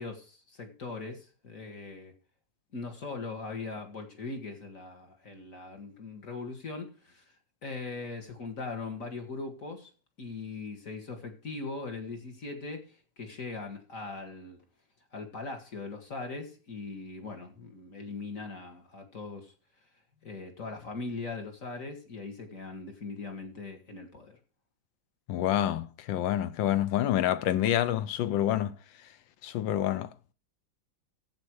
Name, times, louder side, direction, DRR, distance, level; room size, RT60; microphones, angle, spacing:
voice 1, 0.0-2.1 2.7-7.2 7.6-9.9 10.2-12.9 13.2-14.6 15.1-19.5 20.2-24.4, left 3 dB, 45° left, 2.2 m, -40 dB
voice 2, 25.3-28.8 29.4-30.1, left 12 dB, 85° left, 1.5 m, -27 dB
10.5 x 7.8 x 4.7 m
omnidirectional pair, 2.1 m